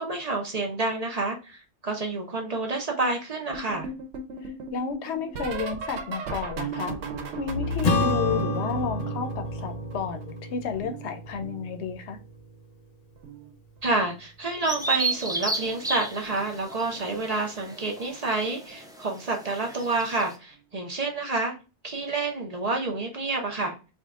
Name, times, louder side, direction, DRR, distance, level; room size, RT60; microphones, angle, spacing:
voice 1, 0.0-3.9 13.8-21.5 21.8-23.7, right 3 dB, 40° right, 0.7 m, -29 dB
sound 1, 3.5-10.3 10.6-12.2 13.2-13.5 13.8-14.1 15.7-15.9 16.3-16.5 18.1-18.2, right 2 dB, 85° right, 0.9 m, -36 dB
voice 2, 4.4-7.0 7.4-12.2, left 5 dB, 80° left, 0.9 m, -32 dB
Acoustic guitar / Strum, 7.8-12.6, left 2 dB, 50° left, 0.5 m, -30 dB
Bird vocalization bird call bird song, 14.7-20.4, right 3 dB, 5° right, 0.4 m, -33 dB
3.6 x 2.2 x 3.5 m
omnidirectional pair, 1.1 m